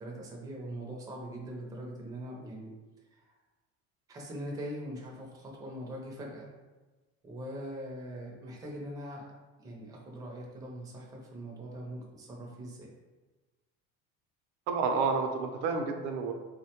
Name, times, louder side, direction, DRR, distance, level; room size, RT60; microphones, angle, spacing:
voice 1, 0.0-2.7 3.1-3.2 4.1-6.5 7.2-9.3 9.6-12.9, right 1 dB, 15° right, -1 dB, 0.4 m, -42 dB
voice 2, 14.7-16.3, right 4 dB, 80° right, 5 dB, 0.5 m, -30 dB
3.5 x 2.1 x 2.8 m, 1.2 s
cardioid pair, 150°, 30 cm